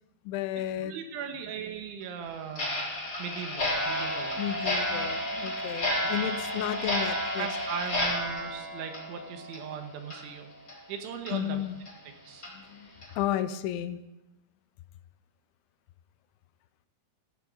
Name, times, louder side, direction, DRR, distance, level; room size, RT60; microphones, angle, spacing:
voice 1, 0.3-0.9 4.4-7.5 11.3-11.8 12.5-12.9 13.2-14.0, left 11 dB, 80° left, 12 dB, 2.9 m, -32 dB
voice 2, 0.8-2.7 3.2-4.5 6.0-6.1 6.7-6.9 7.4-10.5 10.9-11.6 12.2-12.5, right 7 dB, 80° right, 5 dB, 3.7 m, -38 dB
Clock, 2.5-9.7 10.0-10.2 10.7-10.8 11.3-11.4 11.8-11.9 12.4-12.5 13.0-13.2, left 1 dB, 25° left, 3.5 m, -31 dB
15.5 x 15.5 x 3.9 m, 0.96 s
omnidirectional pair, 5.4 m